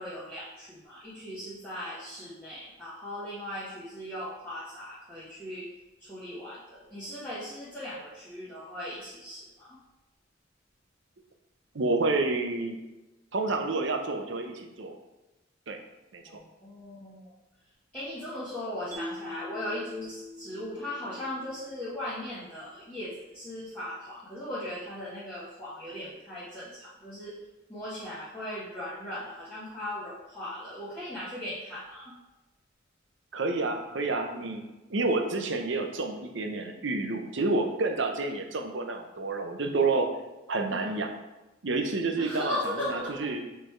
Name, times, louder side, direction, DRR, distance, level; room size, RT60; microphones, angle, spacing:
voice 1, 0.0-5.7 6.0-9.8 16.3-17.3 17.9-27.4 27.7-32.1 40.7-40.9 42.2-43.4, left 1 dB, 10° left, -13 dB, 1.4 m, -38 dB
voice 2, 11.7-12.8 13.3-15.0 15.7-15.8 16.1-16.4 33.3-34.6 34.9-40.1 40.5-41.1 41.6-42.5 42.9-43.4, right 3 dB, 70° right, 5 dB, 0.7 m, -29 dB
Mallet percussion, 18.9-22.2, left 1 dB, 15° right, 0.9 m, -43 dB
6.4 x 3.4 x 4.6 m, 1.0 s
head